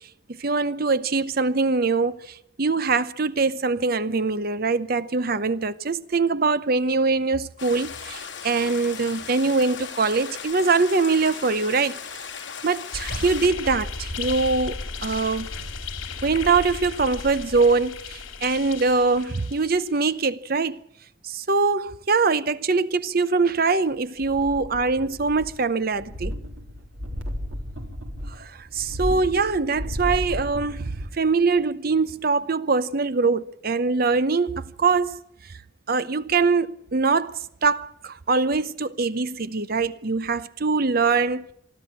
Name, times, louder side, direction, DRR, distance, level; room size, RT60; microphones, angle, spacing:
voice 1, 0.4-12.0 12.6-14.8 15.0-15.5 16.2-20.8 21.2-26.3 28.3-35.2 35.9-41.5, right 4 dB, 45° right, 0.7 m, -23 dB
Stream, 7.6-13.5, left 7 dB, 65° left, 3.4 m, -37 dB
sound 1, 12.9-20.0, left 4 dB, 90° left, 2.8 m, -35 dB
sound 2, 24.2-25.6 25.9-31.2 31.6-31.7, equal, 75° right, 3.7 m, -33 dB
24.5 x 13.0 x 8.9 m
head